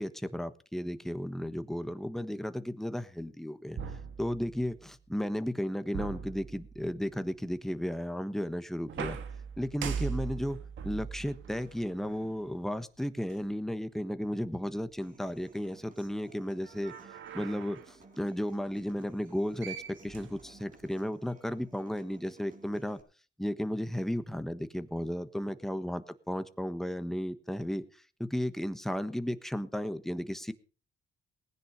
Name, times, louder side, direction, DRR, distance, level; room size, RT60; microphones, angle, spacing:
voice 1, 0.0-3.8 4.2-9.2 9.6-10.6 10.8-16.9 17.3-19.8 20.0-23.0 23.4-27.8 28.2-30.5, equal, ahead, 11 dB, 1.3 m, -34 dB
sound 1, 3.8-4.9 5.9-7.1 8.9-12.5 13.3-13.4 16.6-17.9 19.3-19.4 19.6-20.9, right 7 dB, 75° right, 1.8 m, -40 dB
Human voice / Acoustic guitar, 15.0-23.0, right 3 dB, 45° right, 4.5 m, -57 dB
19.0 x 10.0 x 5.1 m, 0.38 s
cardioid pair, 90°, 20 cm